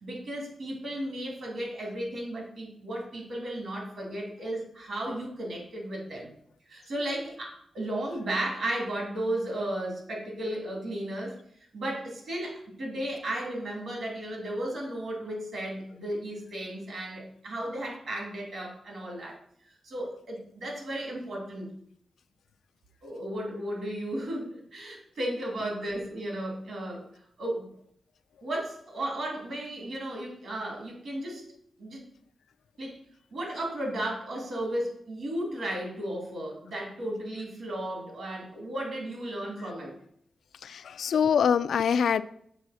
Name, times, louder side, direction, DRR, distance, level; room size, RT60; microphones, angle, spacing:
voice 1, 0.0-6.3 6.7-11.4 11.7-19.4 19.8-21.7 23.0-27.0 27.4-27.7 28.4-31.4 31.8-32.0 32.8-33.0 33.3-39.9, right 1 dB, 55° right, 0 dB, 2.4 m, -34 dB
voice 2, 40.6-42.2, left 7 dB, 75° left, 13 dB, 0.3 m, -24 dB
6.8 x 4.1 x 6.3 m, 0.67 s
wide cardioid pair, 170°, 0 cm